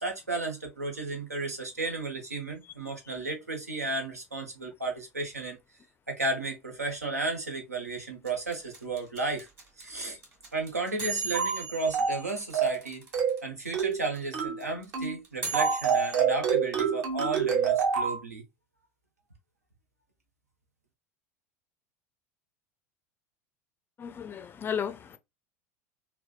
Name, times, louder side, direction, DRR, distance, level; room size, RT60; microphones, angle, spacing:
voice 1, 0.0-5.6 6.1-9.5 9.8-10.2 10.5-13.1 13.4-18.4, right 3 dB, 90° right, 0.8 m, -33 dB
sound 1, 8.3-13.4 13.7-13.8 13.9-16.2, right 4 dB, 30° right, 1.4 m, -37 dB
sound 2, 11.3-11.6 11.9-12.2 12.5-12.8 13.1-13.4 13.7-14.0 14.3-14.6 14.9-15.2 15.5-18.2, right 6 dB, 50° right, 1.0 m, -27 dB
voice 2, 24.0-25.2, left 7 dB, 25° left, 0.4 m, -34 dB
3.3 x 2.1 x 2.2 m
figure-of-eight pair, 75°, 8 cm